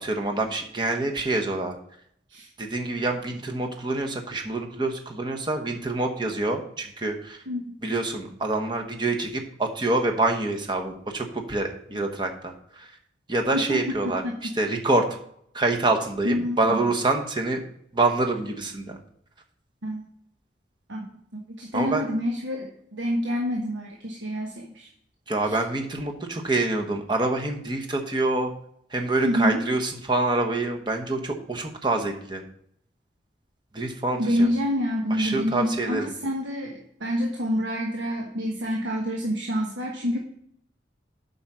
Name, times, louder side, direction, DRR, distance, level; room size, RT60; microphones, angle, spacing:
voice 1, 0.0-1.8 2.6-7.4 7.8-12.9 13.3-14.2 14.6-15.0 15.5-17.6 17.9-19.0 21.7-22.0 25.3-28.5 28.9-32.4 33.7-34.5 35.2-36.1, right 2 dB, 25° right, 3 dB, 1.0 m, -26 dB
voice 2, 14.2-14.5 16.2-16.9 19.8-20.0 20.9-21.0 21.3-24.9 25.4-25.6 29.2-29.7 34.2-40.2, equal, 80° right, 0 dB, 1.2 m, -27 dB
8.1 x 5.5 x 6.0 m, 0.69 s
head